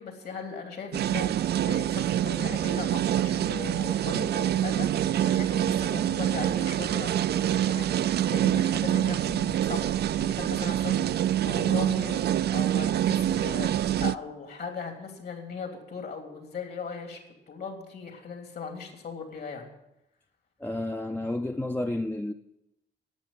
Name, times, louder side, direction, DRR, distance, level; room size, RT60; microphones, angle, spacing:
voice 1, 0.0-17.2 17.5-19.7, left 5 dB, 60° left, 3.1 m, -39 dB
sound 1, 0.9-14.2, right 11 dB, 65° right, 0.4 m, -26 dB
voice 2, 20.6-22.3, left 1 dB, 10° left, 0.5 m, -31 dB
11.5 x 8.4 x 8.9 m
cardioid pair, 115°, 18 cm